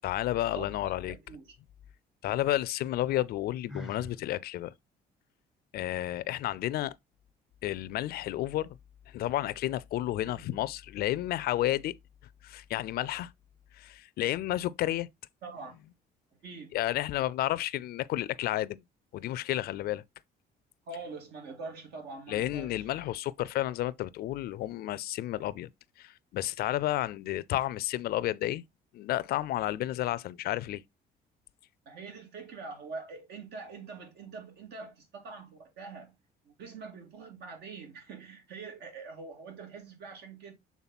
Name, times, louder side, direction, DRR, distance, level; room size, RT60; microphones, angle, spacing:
voice 1, 0.0-1.1 2.2-4.7 5.7-7.0 7.6-8.8 9.1-12.0 12.4-13.3 13.7-15.1 16.7-18.8 19.1-20.0 22.3-25.7 26.0-28.6 28.9-30.8, left 14 dB, 65° left, 0.4 m, -31 dB
voice 2, 1.1-1.6 10.2-10.3 15.4-15.8 16.4-16.8 20.9-22.8 31.9-36.1 36.5-40.5, right 4 dB, 75° right, 2.4 m, -44 dB
Sigh, 3.7-4.2, left 1 dB, ahead, 0.6 m, -41 dB
7.2 x 3.6 x 4.1 m
cardioid pair, 130°, 17 cm